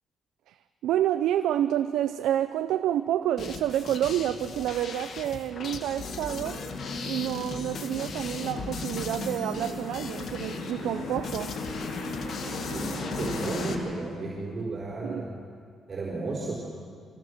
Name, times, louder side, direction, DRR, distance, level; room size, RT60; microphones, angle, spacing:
voice 1, 0.8-6.6 7.0-11.5 15.0-15.2, right 11 dB, 85° right, 10 dB, 0.6 m, -28 dB
sound 1, 3.4-13.7, left 5 dB, 60° left, 2.0 m, -39 dB
sound 2, 5.9-13.8, left 2 dB, 85° left, 5.1 m, -36 dB
voice 2, 12.7-15.3 15.9-16.7, right 3 dB, 40° right, -3 dB, 4.8 m, -33 dB
24.5 x 18.0 x 6.6 m, 2.2 s
cardioid pair, 90°, 0 cm